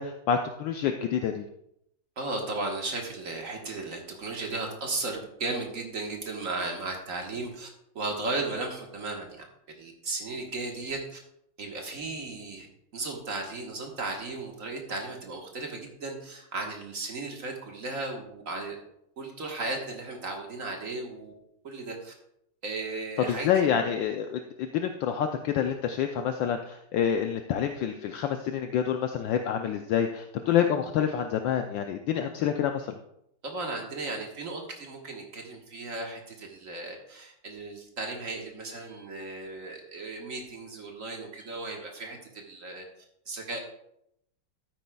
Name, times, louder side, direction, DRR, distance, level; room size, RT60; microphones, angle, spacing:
voice 1, 0.0-1.5 23.3-33.0, left 8 dB, 75° left, 5 dB, 1.2 m, -27 dB
voice 2, 2.2-7.7 7.9-9.4 9.8-11.2 11.6-12.7 12.9-18.8 19.2-21.3 21.6-22.1 22.6-23.5 33.4-42.8 43.3-43.6, right 3 dB, 45° right, 1 dB, 1.5 m, -35 dB
12.5 x 9.4 x 2.3 m, 0.77 s
omnidirectional pair, 2.3 m